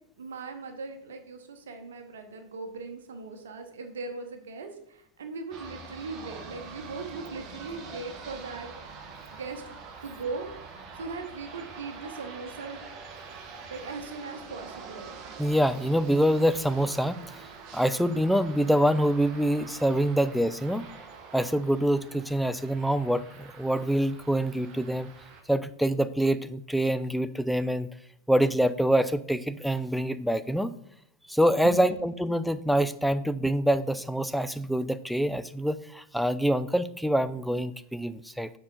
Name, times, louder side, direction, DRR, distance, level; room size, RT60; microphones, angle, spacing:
voice 1, 0.2-8.7 9.3-10.5 10.9-12.8 13.7-15.2 31.6-32.1, right 4 dB, 65° right, 6 dB, 0.9 m, -39 dB
sound 1, 5.5-25.4, right 5 dB, 35° right, 1.1 m, -45 dB
voice 2, 15.4-17.2 17.7-20.9 21.3-25.1 25.5-27.9 28.3-30.7 31.3-38.5, equal, ahead, 12 dB, 0.3 m, -25 dB
7.1 x 4.8 x 3.9 m, 0.74 s
figure-of-eight pair, 90°, 0 cm